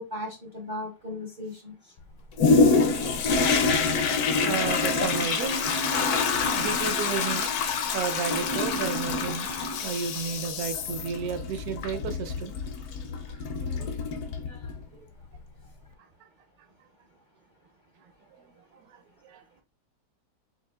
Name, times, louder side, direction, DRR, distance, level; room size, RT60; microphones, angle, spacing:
voice 1, 0.0-1.9 13.7-14.2 14.5-15.1, left 1 dB, 50° right, 0.5 m, -39 dB
Toilet flush, 2.4-14.8 15.3-15.4, left 4 dB, 70° left, 1.1 m, -26 dB
voice 2, 4.4-5.7 6.5-7.5 7.9-12.5 13.4-13.8 18.7-18.9 19.2-19.4, right 6 dB, 65° right, 1.0 m, -32 dB
6.3 x 2.4 x 2.3 m
omnidirectional pair, 1.8 m